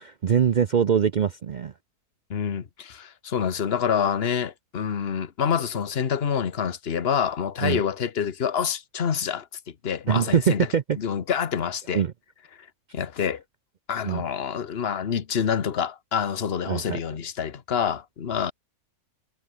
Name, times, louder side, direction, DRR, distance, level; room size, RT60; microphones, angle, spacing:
voice 1, 0.0-1.7 7.6-7.8 10.1-11.0 11.9-12.1 14.0-14.2 16.7-17.0, right 8 dB, 90° right, 0.4 m, -23 dB
voice 2, 2.3-10.7 11.0-12.0 12.9-13.4 13.9-18.5, left 7 dB, 45° left, 1.3 m, -27 dB
omnidirectional pair, 1.6 m